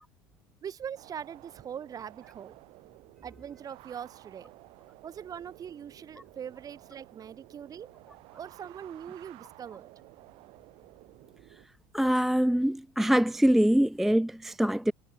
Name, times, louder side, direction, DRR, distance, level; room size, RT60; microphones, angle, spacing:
voice 1, 0.6-2.6 3.2-4.5 5.0-7.9 8.3-9.9, right 8 dB, 35° right, 3.7 m, -42 dB
sound 1, 1.0-11.7, right 21 dB, 60° right, 6.9 m, -54 dB
voice 2, 11.9-14.9, equal, ahead, 0.4 m, -24 dB
supercardioid pair, 100°, 11 cm